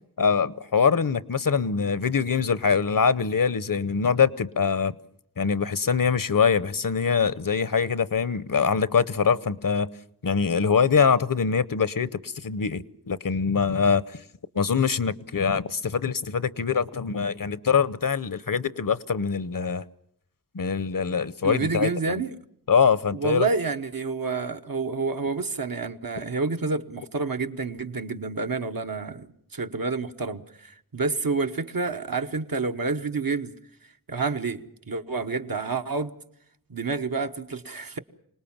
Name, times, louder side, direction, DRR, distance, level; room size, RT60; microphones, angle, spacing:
voice 1, 0.2-4.9 5.4-9.9 10.2-14.0 14.5-19.8 20.5-22.2 22.7-23.5, left 6 dB, 65° left, 0.8 m, -23 dB
voice 2, 21.4-22.3 23.1-33.6 34.1-36.1 36.7-38.0, right 4 dB, 70° right, 1.1 m, -29 dB
26.0 x 19.0 x 7.3 m
wide cardioid pair, 55°, 35 cm